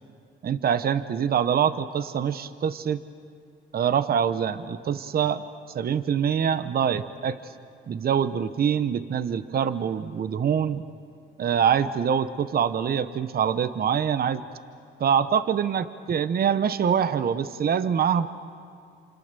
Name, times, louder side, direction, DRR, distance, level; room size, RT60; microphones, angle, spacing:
voice 1, 0.4-3.0 3.7-5.4 5.7-7.4 7.9-10.9 11.4-14.4 15.0-18.3, right 8 dB, 50° right, 13 dB, 1.0 m, -24 dB
28.5 x 27.5 x 6.9 m, 2.2 s
cardioid pair, 90°, 20 cm